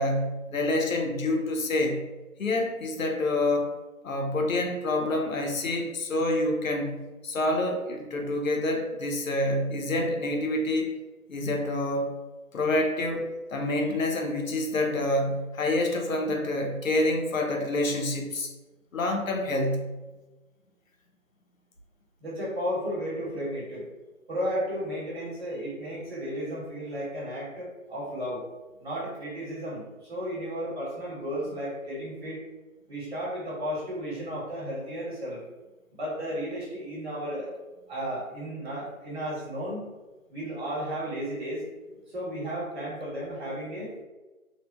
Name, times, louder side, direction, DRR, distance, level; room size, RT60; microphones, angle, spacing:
voice 1, 0.0-2.0 2.4-3.8 4.0-11.0 11.3-12.1 12.5-18.5 18.9-19.9, left 1 dB, 65° left, 3 dB, 0.6 m, -27 dB
voice 2, 22.2-23.8 24.3-28.4 28.8-32.4 32.9-35.4 35.9-37.5 37.9-39.9 40.3-41.6 42.1-44.0, equal, 35° right, -6 dB, 1.1 m, -33 dB
3.3 x 2.1 x 2.2 m, 1.2 s
figure-of-eight pair, 165°, 43 cm